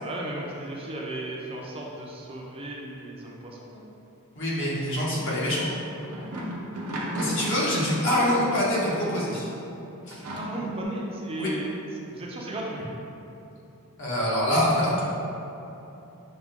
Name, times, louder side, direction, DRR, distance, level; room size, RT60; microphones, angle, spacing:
voice 1, 0.0-3.8 10.1-11.7 12.1-12.8, right 1 dB, 25° right, -2 dB, 0.4 m, -35 dB
voice 2, 4.4-5.6 7.2-9.5 10.1-10.2 11.4-11.5 14.0-15.0, left 1 dB, 60° left, -6 dB, 1.0 m, -25 dB
sound 1, 5.9-9.3 10.1-10.8, equal, 85° right, 0.7 m, -34 dB
5.8 x 2.2 x 3.5 m, 3.0 s
head